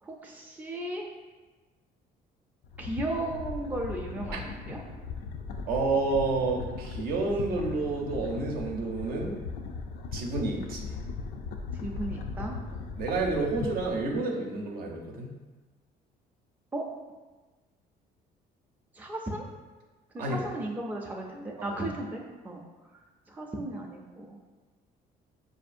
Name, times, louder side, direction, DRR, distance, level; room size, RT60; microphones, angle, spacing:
voice 1, 0.0-1.1 2.8-4.8 11.7-12.5 16.7-16.8 18.9-19.5 20.1-22.6 23.3-24.4, right 1 dB, 10° right, 0 dB, 0.4 m, -35 dB
sound 1, 2.6-14.2, left 4 dB, 70° left, 0.4 m, -38 dB
voice 2, 5.7-9.4 10.1-10.9 12.7-15.3 20.2-20.4 21.6-21.8, right 3 dB, 60° right, 0 dB, 0.7 m, -30 dB
4.7 x 2.6 x 2.5 m, 1.3 s
cardioid pair, 110°, 17 cm